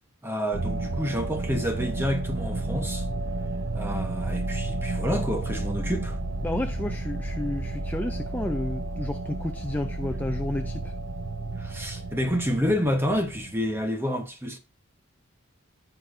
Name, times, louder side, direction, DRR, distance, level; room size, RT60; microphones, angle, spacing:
voice 1, 0.2-3.1 3.7-6.2 11.6-14.6, equal, 10° right, 1.0 m, -28 dB
sound 1, 0.5-13.8, right 2 dB, 85° right, 1.0 m, -31 dB
voice 2, 6.4-10.9, left 1 dB, 10° left, 0.4 m, -31 dB
14.5 x 6.1 x 2.6 m
head